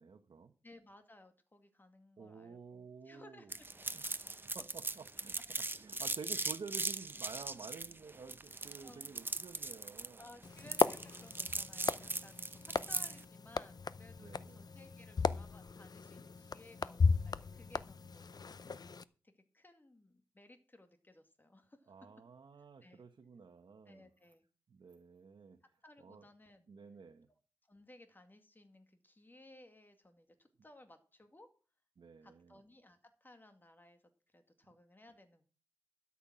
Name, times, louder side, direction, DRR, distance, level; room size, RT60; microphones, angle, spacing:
voice 1, 0.0-0.5 2.2-3.5 3.9-4.3 4.5-10.3 14.2-14.7 21.9-24.1 24.7-25.6 26.0-26.2 26.7-27.3 32.0-32.6, right 5 dB, 70° right, 6 dB, 1.1 m, -51 dB
voice 2, 0.6-3.7 4.1-4.2 8.8-9.1 10.2-18.8 19.2-21.9 22.8-23.1 23.9-24.4 25.8-26.7 27.7-31.5 32.2-34.0 34.3-35.4, left 1 dB, 25° left, 7 dB, 2.1 m, -60 dB
sound 1, 3.5-13.2, right 2 dB, 25° right, 0.8 m, -39 dB
sound 2, 10.4-19.0, left 5 dB, 55° left, 0.6 m, -36 dB
13.0 x 7.3 x 6.2 m, 0.36 s
wide cardioid pair, 100°, 8 cm